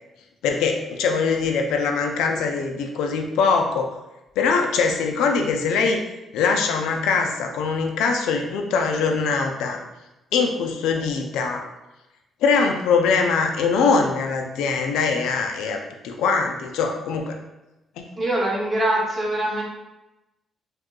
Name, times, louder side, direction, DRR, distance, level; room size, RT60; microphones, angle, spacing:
voice 1, 0.4-3.9 4.4-6.0 6.3-9.8 10.3-11.6 12.4-17.3, left 5 dB, 90° left, 3 dB, 0.4 m, -22 dB
voice 2, 18.2-19.6, right 1 dB, 30° right, -3 dB, 0.9 m, -23 dB
2.6 x 2.3 x 3.7 m, 0.99 s
cardioid pair, 90°, 0 cm